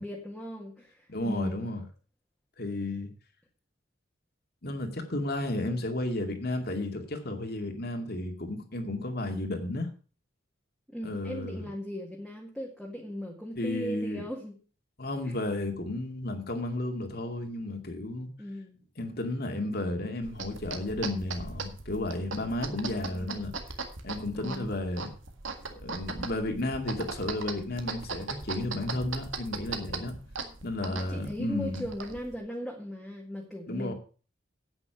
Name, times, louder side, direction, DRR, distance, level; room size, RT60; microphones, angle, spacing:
voice 1, 0.0-1.7 10.9-14.6 15.2-15.4 18.4-18.8 22.7-23.4 24.4-24.9 30.4-30.5 30.8-33.9, equal, ahead, -3 dB, 1.9 m, -38 dB
voice 2, 1.1-1.8 2.6-3.1 4.6-9.9 11.0-11.7 13.6-14.2 15.0-18.3 19.0-23.5 24.0-25.1 25.7-30.1 30.6-31.9 33.7-33.9, left 1 dB, 55° left, 5 dB, 2.3 m, -33 dB
sound 1, 20.2-32.4, right 4 dB, 85° right, 1.8 m, -39 dB
9.9 x 8.8 x 5.7 m, 0.37 s
head